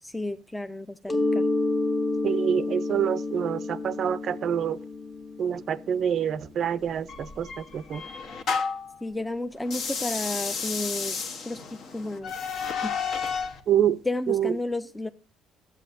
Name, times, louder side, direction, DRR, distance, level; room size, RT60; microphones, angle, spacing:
voice 1, 0.0-1.5 9.0-12.3 12.8-12.9 14.1-15.1, left 2 dB, 10° left, 0.4 m, -32 dB
Mallet percussion, 1.1-6.6, left 2 dB, 25° left, 1.1 m, -29 dB
voice 2, 2.2-4.8 5.4-8.0 13.7-14.0 14.3-14.5, right 9 dB, 55° right, 0.4 m, -26 dB
sound 1, 7.1-8.9 9.6-13.6, left 5 dB, 65° left, 1.2 m, -31 dB
12.5 x 8.3 x 2.6 m
cardioid pair, 100°, 0 cm